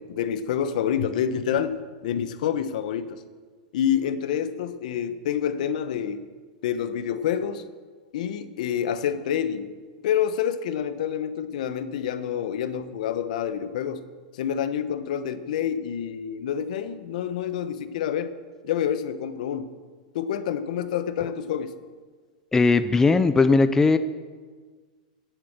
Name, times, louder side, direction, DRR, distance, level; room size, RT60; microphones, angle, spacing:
voice 1, 0.0-3.2 3.7-6.2 6.6-7.6 8.1-9.7 10.0-14.0 14.3-18.3 18.6-19.7 20.1-21.7, left 9 dB, 70° left, 11 dB, 1.0 m, -27 dB
voice 2, 22.5-24.0, left 3 dB, 10° left, 11 dB, 0.5 m, -18 dB
16.5 x 7.9 x 6.7 m, 1.5 s
supercardioid pair, 135°, 4 cm